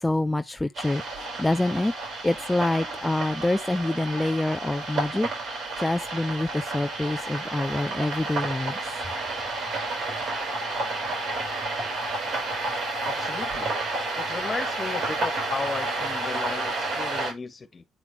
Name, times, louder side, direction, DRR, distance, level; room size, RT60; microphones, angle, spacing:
voice 1, 0.0-1.9 2.2-5.3 5.8-8.8, left 2 dB, 10° left, 0.4 m, -26 dB
sound 1, 0.7-17.3, right 2 dB, 65° right, 6.0 m, -31 dB
voice 2, 13.0-13.7 14.2-17.9, left 4 dB, 35° left, 1.8 m, -35 dB
9.9 x 4.7 x 3.3 m
cardioid pair, 90°, 0 cm